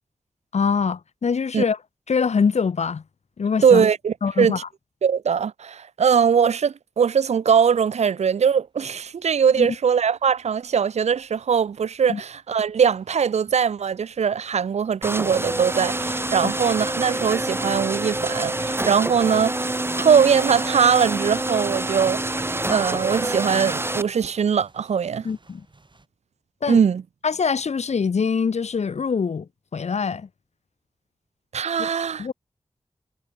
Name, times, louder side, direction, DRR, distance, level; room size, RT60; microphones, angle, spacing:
voice 1, 0.5-1.8 2.1-3.0 3.4-3.8 4.2-4.6 9.6-9.7 12.1-12.2 16.4-16.5 25.2-25.6 26.6-26.8 27.2-30.3 32.2-32.3, left 5 dB, 90° left, 1.7 m, -24 dB
voice 2, 3.6-4.6 5.0-22.4 22.7-25.3 26.7-27.0 31.5-32.3, right 7 dB, 85° right, 0.5 m, -21 dB
sound 1, 10.1-10.3 10.8-10.9 11.0-11.2 12.0-12.1 12.5-12.7 13.0-13.1 13.5-15.7 15.9-16.7 16.9-26.1, right 3 dB, 45° right, 5.7 m, -46 dB
sound 2, 15.0-24.0, right 1 dB, 20° right, 1.2 m, -27 dB
cardioid pair, 50°, 11 cm